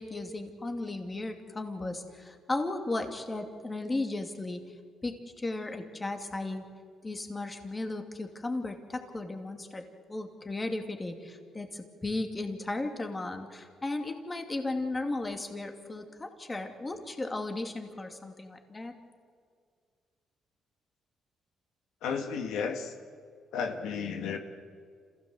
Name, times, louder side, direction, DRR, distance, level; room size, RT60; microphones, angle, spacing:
voice 1, 0.0-4.6 5.0-6.6 7.0-18.9, left 2 dB, 20° left, 5 dB, 2.6 m, -35 dB
voice 2, 22.0-22.9 23.5-24.4, left 6 dB, 85° left, 5 dB, 2.0 m, -33 dB
27.0 x 16.0 x 7.9 m, 2.1 s
cardioid pair, 90°, 0 cm